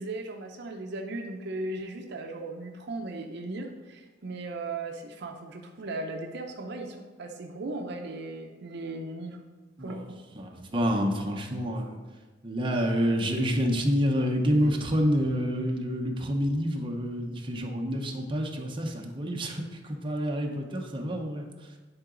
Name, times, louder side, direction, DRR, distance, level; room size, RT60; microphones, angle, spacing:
voice 1, 0.0-9.4 9.8-10.2, right 2 dB, 60° right, 3 dB, 0.6 m, -37 dB
voice 2, 10.3-12.0 12.4-21.5, equal, 25° right, 1 dB, 0.8 m, -28 dB
9.7 x 3.8 x 3.8 m, 1.3 s
head